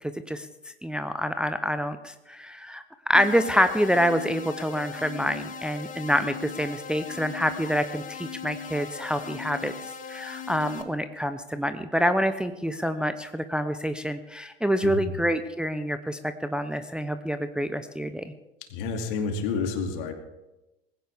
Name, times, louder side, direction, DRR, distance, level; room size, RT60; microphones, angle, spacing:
voice 1, 0.0-9.7 10.1-18.3, equal, 5° right, 9 dB, 0.7 m, -27 dB
sound 1, 3.1-10.8, left 6 dB, 25° left, 1.7 m, -39 dB
voice 2, 14.8-15.1 18.7-20.1, left 4 dB, 60° left, 4 dB, 2.6 m, -29 dB
19.5 x 16.0 x 3.6 m, 0.97 s
figure-of-eight pair, 75°, 29 cm